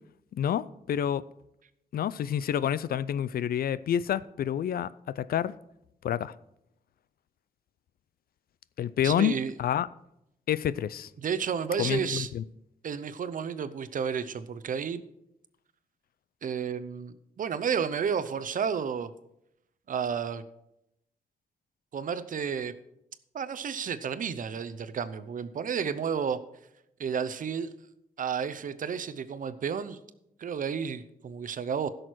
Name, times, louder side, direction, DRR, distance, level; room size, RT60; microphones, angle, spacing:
voice 1, 0.3-1.2 1.9-5.5 6.0-6.3 8.8-9.9 10.5-11.1 11.8-12.4, left 10 dB, 85° left, 0.4 m, -28 dB
voice 2, 9.0-9.5 11.2-12.3 12.8-15.0 16.4-19.1 19.9-20.4 21.9-22.7 23.3-26.4 27.0-27.7 28.2-30.0 30.4-31.9, right 7 dB, 65° right, 0.7 m, -31 dB
15.5 x 6.4 x 4.6 m
wide cardioid pair, 125°, 15 cm